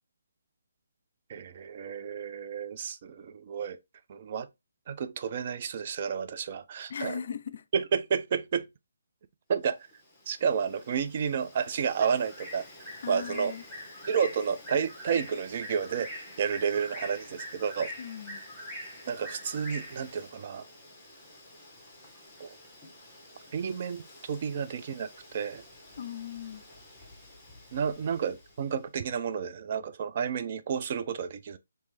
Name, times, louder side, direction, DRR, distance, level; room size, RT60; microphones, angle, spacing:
voice 1, 1.3-3.8 4.1-4.5 4.9-7.2 7.7-8.7 9.5-9.9 10.3-13.5 14.1-17.9 19.1-20.7 22.4-22.6 23.5-25.6 27.7-31.6, right 7 dB, 40° right, 0.4 m, -31 dB
voice 2, 6.9-7.6 13.0-13.6 18.0-18.5 26.0-26.6, left 8 dB, 55° left, 0.4 m, -38 dB
Bird, 9.9-28.6, left 1 dB, 5° left, 1.2 m, -46 dB
3.2 x 3.2 x 3.2 m
figure-of-eight pair, 150°, 0 cm